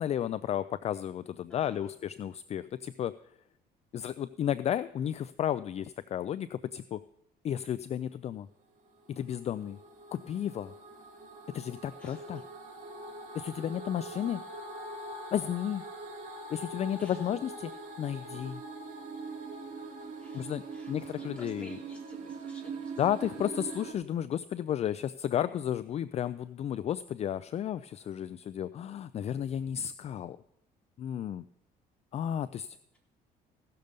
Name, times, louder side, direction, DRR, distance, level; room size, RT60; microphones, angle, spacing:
voice 1, 0.0-3.1 3.9-7.0 7.4-8.5 9.1-9.8 10.1-10.7 11.5-12.4 13.3-14.4 15.3-15.8 16.5-17.7 18.0-18.6 20.3-20.6 20.9-21.7 23.0-30.4 31.0-31.4 32.1-32.8, left 10 dB, 40° left, 14 dB, 0.3 m, -33 dB
voice 2, 1.5-2.0 12.0-12.4 17.0-17.3 20.2-23.0, left 2 dB, 5° left, -3 dB, 3.8 m, -53 dB
sound 1, 8.8-23.9, right 3 dB, 45° right, 2.2 m, -43 dB
16.0 x 6.7 x 5.2 m, 0.80 s
cardioid pair, 110°, 17 cm